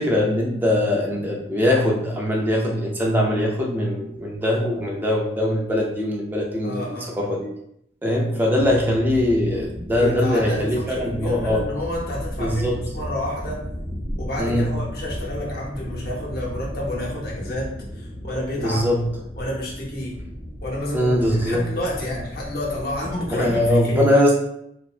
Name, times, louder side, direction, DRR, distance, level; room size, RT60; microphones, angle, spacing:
voice 1, 0.0-6.8 7.2-7.5 8.0-11.6 12.4-12.8 14.4-14.7 18.6-19.0 20.9-21.6 23.3-24.3, left 1 dB, 10° right, -2 dB, 0.4 m, -21 dB
voice 2, 6.6-7.1 9.9-13.6 14.2-18.9 19.4-20.2 20.6-24.1, left 1 dB, 55° left, -4 dB, 0.7 m, -30 dB
sound 1, 8.5-23.7, equal, 20° left, 0.8 m, -35 dB
2.9 x 2.2 x 2.3 m, 0.76 s
head